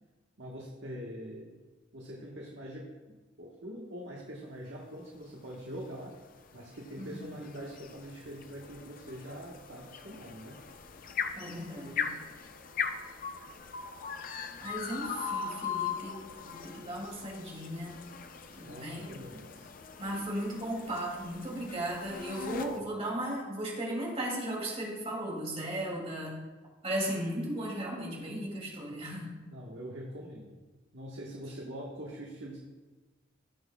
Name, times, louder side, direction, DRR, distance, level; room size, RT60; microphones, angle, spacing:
voice 1, 0.4-1.5 1.9-6.1 6.5-10.6 18.6-19.7 22.8-23.0 29.5-30.6 30.9-32.6, equal, 75° right, -3 dB, 1.4 m, -44 dB
sound 1, 5.5-22.8, left 6 dB, 45° left, 0.5 m, -40 dB
voice 2, 7.0-7.3 11.4-12.1 14.6-18.0 18.6-19.1 20.0-26.4 26.8-29.3, right 1 dB, 35° right, -3 dB, 2.7 m, -36 dB
17.0 x 6.2 x 2.3 m, 1.3 s
head